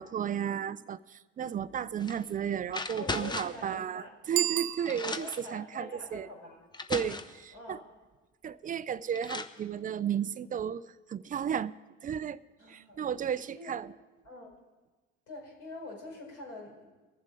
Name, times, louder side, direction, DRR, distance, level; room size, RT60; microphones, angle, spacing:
voice 1, 0.0-6.3 6.9-7.8 8.4-11.7 12.0-12.4 12.7-13.9, right 8 dB, 25° right, 17 dB, 0.4 m, -34 dB
sound 1, 2.0-2.2 2.7-3.7 4.5-4.6 4.9-5.5 6.3-6.4 6.7-7.4 8.7-8.8 9.1-9.6, left 3 dB, 15° left, 0.7 m, -37 dB
voice 2, 2.9-4.1 5.0-6.6 7.5-7.9 12.6-13.0 13.6-13.7 14.2-14.5 15.3-16.9, left 2 dB, 65° left, -1 dB, 4.9 m, -45 dB
Bicycle bell, 4.3-5.5, right 16 dB, 80° right, 0.5 m, -33 dB
21.0 x 7.4 x 4.9 m, 1.2 s
hypercardioid pair, 70°, 31 cm